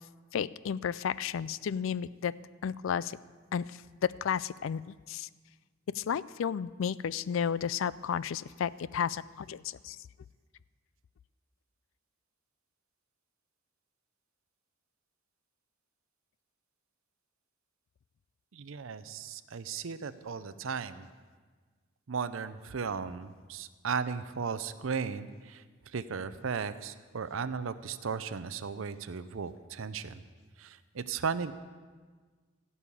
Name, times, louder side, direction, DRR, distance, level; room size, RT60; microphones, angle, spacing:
voice 1, 0.3-2.3 2.6-3.2 3.5-3.6 4.0-5.3 5.9-10.0, left 7 dB, 65° left, 19 dB, 0.3 m, -32 dB
voice 2, 18.5-21.1 22.1-30.2 30.6-31.5, right 6 dB, 70° right, 12 dB, 0.5 m, -36 dB
16.5 x 5.6 x 8.3 m, 1.5 s
head